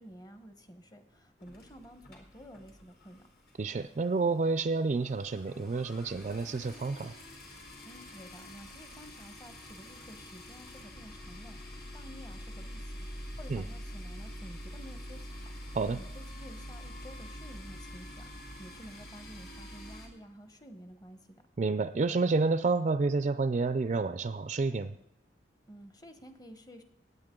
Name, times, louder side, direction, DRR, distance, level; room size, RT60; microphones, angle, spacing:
voice 1, 0.0-3.2 7.8-15.4 15.9-21.2 25.7-26.8, equal, 20° left, 9 dB, 1.0 m, -51 dB
sound 1, 1.4-3.2 3.5-3.7 4.0-4.1 4.3-20.1, equal, 55° left, 2.7 m, -45 dB
voice 2, 3.6-7.1 13.5-13.6 15.7-16.0 21.6-24.9, right 3 dB, 40° right, 11 dB, 0.4 m, -29 dB
19.5 x 8.3 x 3.7 m, 0.80 s
head